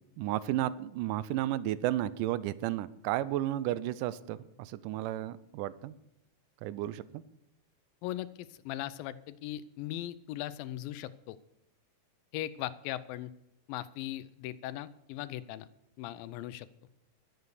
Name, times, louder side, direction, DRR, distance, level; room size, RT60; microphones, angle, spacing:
voice 1, 0.2-5.9 6.6-7.2, right 13 dB, 80° right, 17 dB, 2.0 m, -33 dB
voice 2, 8.0-11.4 12.3-13.3 13.7-15.7 16.0-16.7, left 13 dB, 85° left, 15 dB, 2.3 m, -39 dB
12.5 x 8.0 x 6.7 m, 0.83 s
omnidirectional pair, 4.0 m